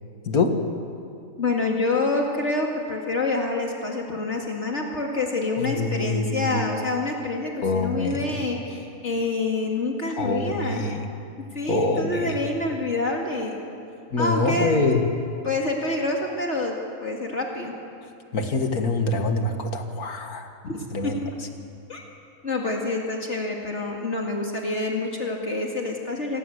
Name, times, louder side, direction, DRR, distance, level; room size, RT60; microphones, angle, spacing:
voice 1, 0.3-0.7 5.6-6.7 7.6-8.4 10.2-11.1 11.7-12.5 14.1-15.1 18.3-20.5 20.9-21.2, left 3 dB, 90° left, 5 dB, 2.3 m, -25 dB
voice 2, 1.4-10.9 11.5-13.6 14.2-14.8 15.4-16.7 17.0-17.7 20.6-21.3 21.9-22.0 22.4-26.4, left 2 dB, 50° left, 0 dB, 2.6 m, -27 dB
27.5 x 18.0 x 8.1 m, 2.5 s
omnidirectional pair, 1.5 m